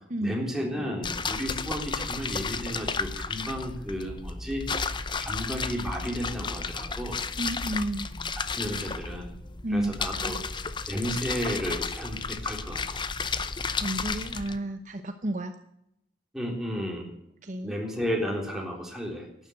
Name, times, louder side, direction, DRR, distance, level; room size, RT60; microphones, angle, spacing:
voice 1, 0.2-4.9 5.2-7.2 8.5-9.3 9.7-13.0 16.3-17.1 17.6-19.3, equal, 5° right, -1 dB, 3.8 m, -33 dB
sound 1, 1.0-14.6, left 4 dB, 25° left, 0.7 m, -33 dB
voice 2, 7.4-8.1 9.6-9.9 10.3-10.4 13.8-15.5 17.4-17.7, right 1 dB, 45° right, 7 dB, 0.9 m, -31 dB
12.0 x 10.0 x 7.8 m, 0.78 s
head